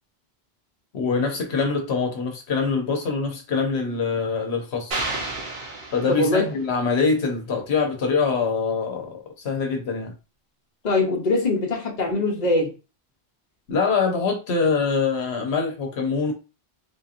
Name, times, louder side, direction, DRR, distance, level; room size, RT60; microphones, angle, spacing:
voice 1, 0.9-5.0 5.9-10.1 13.7-16.3, left 4 dB, 85° left, 1.1 m, -24 dB
sound 1, 4.9-6.6, right 2 dB, 70° right, 1.1 m, -31 dB
voice 2, 6.1-6.4 10.8-12.7, left 2 dB, 45° left, 1.0 m, -22 dB
3.5 x 2.8 x 2.5 m
omnidirectional pair, 1.1 m